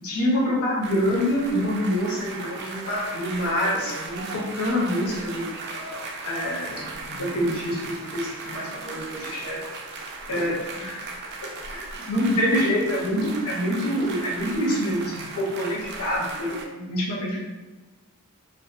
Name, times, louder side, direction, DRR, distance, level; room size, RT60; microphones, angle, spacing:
voice 1, 0.0-5.4 6.2-9.7 10.3-11.1 11.4-17.4, equal, 80° left, -4 dB, 0.6 m, -26 dB
sound 1, 0.8-16.6, right 3 dB, 50° right, 0.3 m, -37 dB
2.6 x 2.1 x 2.3 m, 1.2 s
head